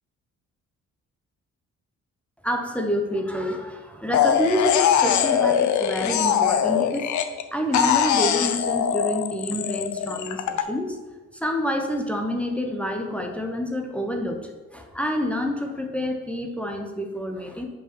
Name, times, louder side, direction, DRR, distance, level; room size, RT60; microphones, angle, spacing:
voice 1, 2.4-7.1 7.5-11.0 11.3-17.7, left 1 dB, 5° left, 3 dB, 0.9 m, -28 dB
sound 1, 4.1-7.4 7.7-10.6, left 8 dB, 70° left, 0.7 m, -22 dB
5.5 x 4.8 x 6.0 m, 1.3 s
cardioid pair, 90°, 30 cm